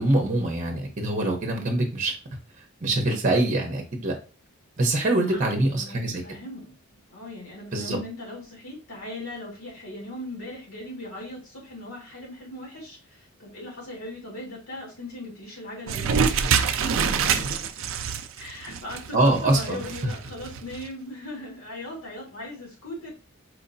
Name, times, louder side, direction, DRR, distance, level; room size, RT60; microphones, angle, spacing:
voice 1, 0.0-2.1 2.8-4.1 4.8-6.2 7.7-8.0 19.1-19.8, right 2 dB, 35° right, 2 dB, 0.9 m, -24 dB
voice 2, 5.2-6.7 7.1-17.7 18.4-23.1, left 1 dB, 75° left, -3 dB, 2.1 m, -39 dB
sound 1, 15.9-20.9, right 6 dB, 65° right, 0.4 m, -26 dB
4.5 x 2.8 x 2.6 m, 0.33 s
head